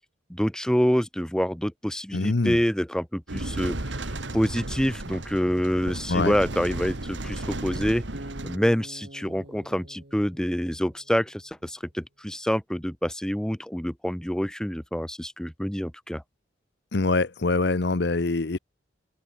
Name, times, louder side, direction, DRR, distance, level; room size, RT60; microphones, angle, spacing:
voice 1, 0.3-8.0 8.4-16.2, equal, 5° left, 1.0 m, -27 dB
voice 2, 2.1-2.6 6.1-6.3 16.9-18.6, left 3 dB, 65° left, 0.8 m, -24 dB
sound 1, 3.3-8.6, right 2 dB, 75° right, 2.1 m, -34 dB
Acoustic guitar, 8.1-11.3, right 1 dB, 60° right, 2.2 m, -45 dB
head